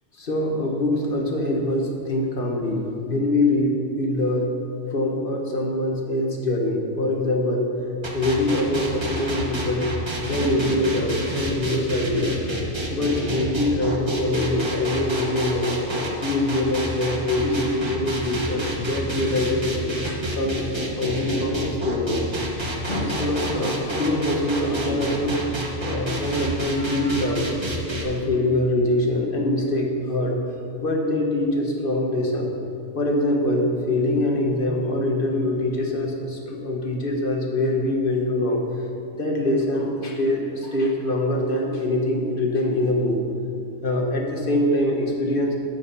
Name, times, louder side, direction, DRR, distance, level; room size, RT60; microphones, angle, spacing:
voice 1, 0.2-4.4 4.9-7.7 8.1-9.9 10.2-12.4 12.9-15.7 16.2-20.6 20.9-22.2 22.9-25.5 25.8-27.5 28.0-30.4 30.8-32.5 32.9-38.6 39.1-43.2 43.8-45.5, left 1 dB, 45° left, 0 dB, 1.5 m, -24 dB
sound 1, 8.0-28.0, equal, 25° right, 1.0 m, -29 dB
14.0 x 5.0 x 5.6 m, 2.6 s
omnidirectional pair, 1.3 m